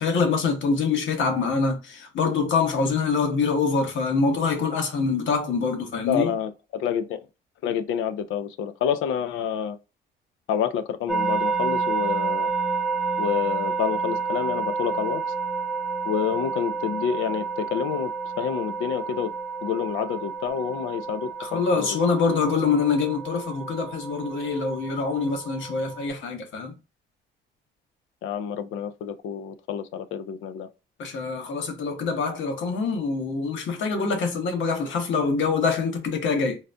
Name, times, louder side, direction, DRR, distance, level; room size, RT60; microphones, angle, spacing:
voice 1, 0.0-6.3 21.4-26.7 31.0-36.6, left 4 dB, 75° left, 1.1 m, -25 dB
voice 2, 6.1-7.2 7.6-9.8 10.5-12.5 13.2-15.2 16.0-18.1 18.4-19.3 19.6-22.0 28.2-30.7, left 8 dB, 90° left, 0.5 m, -28 dB
sound 1, 11.1-26.1, right 5 dB, ahead, 0.5 m, -30 dB
3.9 x 2.1 x 2.5 m
cardioid pair, 90°, 20 cm